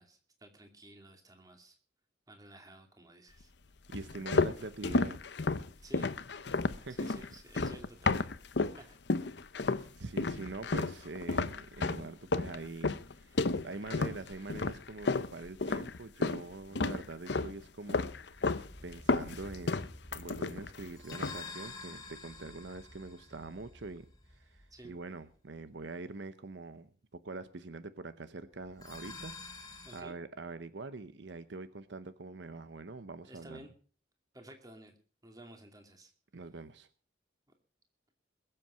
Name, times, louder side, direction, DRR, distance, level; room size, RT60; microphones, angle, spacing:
voice 1, 0.0-1.8 2.3-3.5 5.8-6.1 6.9-8.3 8.7-9.0 9.7-9.9 24.7-24.9 29.8-30.2 33.3-33.7 34.3-35.0 35.2-36.1, right 1 dB, 20° right, 4 dB, 2.5 m, -53 dB
sound 1, 3.9-8.8 9.1-9.9 10.2-16.4 16.7-17.6 17.9-18.7 18.9-20.8 21.1-21.5, left 3 dB, 65° left, 0.7 m, -32 dB
voice 2, 3.9-5.2 6.8-7.1 9.9-33.7 36.3-36.9, right 3 dB, 70° right, 12 dB, 0.8 m, -44 dB
sound 2, 18.3-25.0 28.7-30.0, left 3 dB, 20° left, 2.2 m, -49 dB
21.5 x 7.8 x 5.7 m, 0.42 s
head